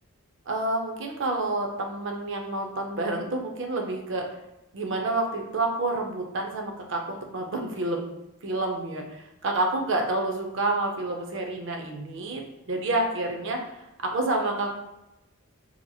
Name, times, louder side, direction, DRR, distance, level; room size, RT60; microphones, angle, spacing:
voice 1, 0.5-4.3 4.7-8.1 8.4-14.7, right 2 dB, 55° right, 2 dB, 0.5 m, -29 dB
2.8 x 2.7 x 2.3 m, 0.93 s
head